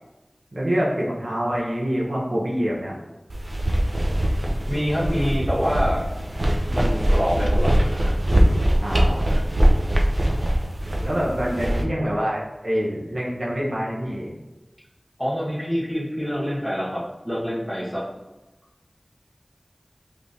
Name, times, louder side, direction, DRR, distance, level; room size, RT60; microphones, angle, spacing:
voice 1, 0.5-2.9 8.8-9.2 11.0-14.3, equal, 80° right, -4 dB, 0.9 m, -26 dB
sound 1, 3.3-11.8, right 1 dB, 55° right, 0.5 m, -22 dB
voice 2, 4.7-6.1 6.7-8.6 9.3-9.4 11.4-11.5 15.2-18.1, equal, ahead, -6 dB, 1.4 m, -26 dB
5.2 x 3.2 x 2.7 m, 1.1 s
wide cardioid pair, 55°, 0 cm